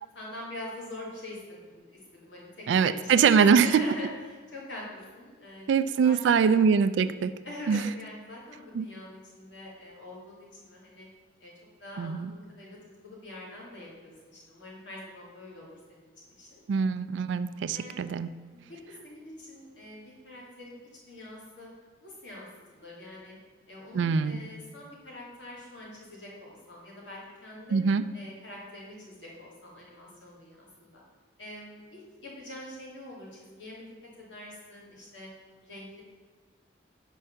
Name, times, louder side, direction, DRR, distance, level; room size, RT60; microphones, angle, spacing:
voice 1, 0.1-6.4 7.4-11.1 11.4-11.5 11.8-12.8 13.0-16.6 17.7-18.2 18.5-18.8 19.0-20.8 21.1-21.7 22.0-23.4 23.7-27.8 28.1-31.0 31.4-33.9 34.2-35.3 35.6-36.0, left 1 dB, 80° left, -5 dB, 2.4 m, -44 dB
voice 2, 2.7-3.8 5.7-7.3 7.7-7.8 8.7-8.9 12.0-12.3 16.7-18.3 23.9-24.4 27.7-28.0, right 6 dB, 75° right, 12 dB, 0.3 m, -23 dB
5.9 x 4.6 x 6.5 m, 1.5 s
head